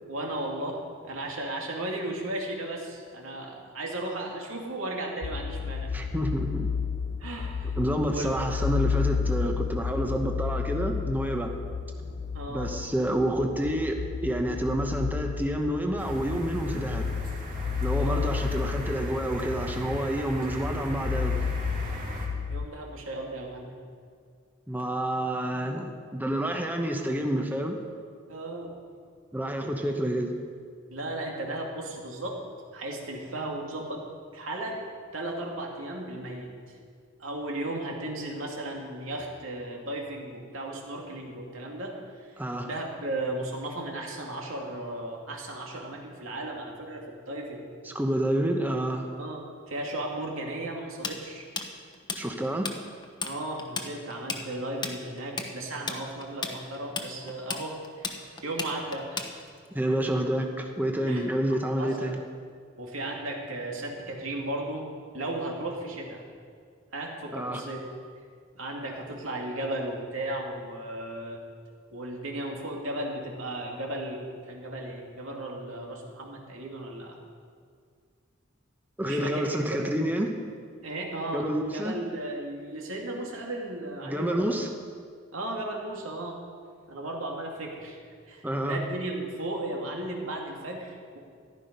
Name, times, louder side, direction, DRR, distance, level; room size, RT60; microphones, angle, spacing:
voice 1, 0.1-5.9 7.2-7.8 8.1-8.3 12.3-12.7 18.0-18.3 22.5-23.8 28.3-28.8 30.9-32.4 32.7-34.1 34.3-34.8 35.1-36.5 37.2-42.4 42.6-47.7 49.2-51.5 53.2-58.2 58.4-59.3 61.1-62.1 62.8-64.9 65.1-66.2 66.9-67.8 68.5-71.4 71.9-77.2 79.0-79.8 80.8-84.6 85.3-86.4 86.9-88.0 88.3-91.2, right 1 dB, 80° right, 0 dB, 2.6 m, -35 dB
sound 1, 5.2-22.7, left 6 dB, 45° left, 0.4 m, -32 dB
voice 2, 5.9-6.7 7.8-11.5 12.5-17.0 17.8-21.4 24.7-27.8 29.3-30.4 42.4-42.7 47.8-49.1 52.1-52.7 59.7-62.2 67.3-67.6 79.0-80.3 81.3-81.9 84.0-84.7 88.4-88.8, right 1 dB, 10° right, 3 dB, 0.9 m, -28 dB
sound 2, 16.0-22.3, equal, 40° right, 2.6 m, -38 dB
Tools, 51.0-52.8 53.0-53.3 53.6-59.7, left 4 dB, 20° left, 1.0 m, -34 dB
14.5 x 12.0 x 5.3 m, 2.1 s
head